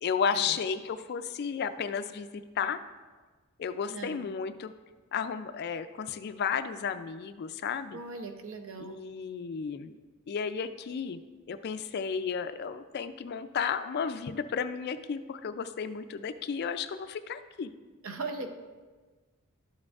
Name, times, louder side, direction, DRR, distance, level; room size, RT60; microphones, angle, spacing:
voice 1, 0.0-2.8 3.6-4.7 5.1-8.0 8.8-10.0 10.3-11.2 11.5-17.7, left 6 dB, 45° left, 11 dB, 0.3 m, -33 dB
voice 2, 3.9-4.2 7.9-9.0 18.0-18.5, right 3 dB, 65° right, 5 dB, 0.7 m, -39 dB
11.5 x 7.4 x 2.4 m, 1.4 s
head